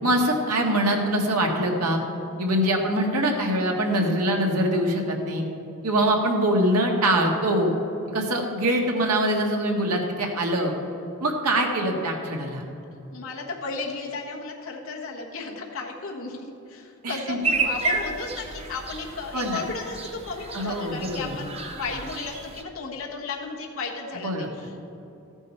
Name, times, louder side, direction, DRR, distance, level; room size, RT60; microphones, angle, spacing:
voice 1, 0.0-2.0 2.4-5.4 5.8-7.7 8.1-10.7 11.2-12.6 17.0-17.4 19.3-19.6 20.5-21.4 24.2-24.5, right 1 dB, 90° right, 1 dB, 1.7 m, -23 dB
voice 2, 13.1-24.8, left 3 dB, 65° left, -1 dB, 1.3 m, -34 dB
sound 1, 17.4-22.6, right 3 dB, 25° right, 0.8 m, -31 dB
14.0 x 9.1 x 4.4 m, 2.8 s
head